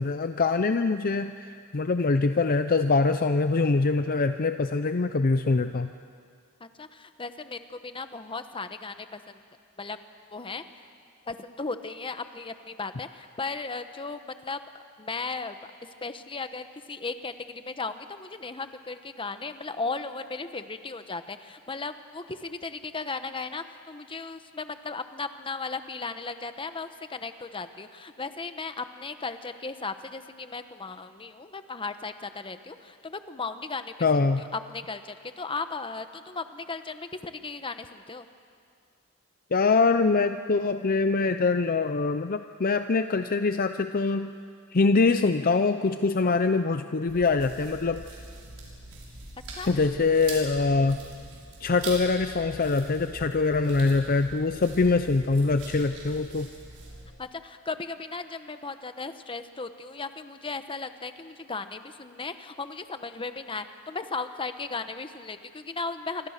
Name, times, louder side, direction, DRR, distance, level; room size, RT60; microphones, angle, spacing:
voice 1, 0.0-5.9 34.0-34.4 39.5-44.3 44.7-48.0 49.7-51.0 51.6-56.5, left 3 dB, 40° left, 9 dB, 0.6 m, -24 dB
voice 2, 6.6-9.4 9.8-10.0 10.3-10.9 11.3-14.6 15.0-15.6 16.0-38.3 49.5-49.9 50.7-50.9 57.2-66.3, left 4 dB, 25° left, 10 dB, 1.0 m, -36 dB
sound 1, 47.1-57.0, right 2 dB, 80° right, 6.6 m, -43 dB
27.5 x 24.5 x 6.6 m, 2.2 s
head